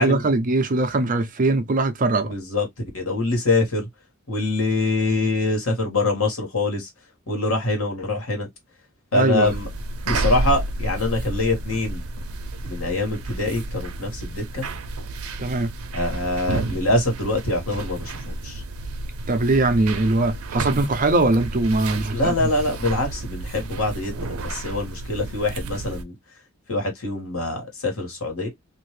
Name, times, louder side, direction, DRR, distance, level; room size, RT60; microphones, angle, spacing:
voice 1, 0.0-2.3 9.1-9.5 15.4-15.7 19.3-22.5, right 2 dB, 40° right, 0.6 m, -21 dB
voice 2, 2.2-3.9 4.3-6.9 7.3-8.5 9.1-9.7 10.0-12.0 12.6-14.7 15.9-18.6 22.1-26.1 26.7-28.5, left 2 dB, 75° left, 1.6 m, -24 dB
sound 1, 9.4-26.0, right 2 dB, 90° right, 0.6 m, -31 dB
2.7 x 2.5 x 3.2 m
head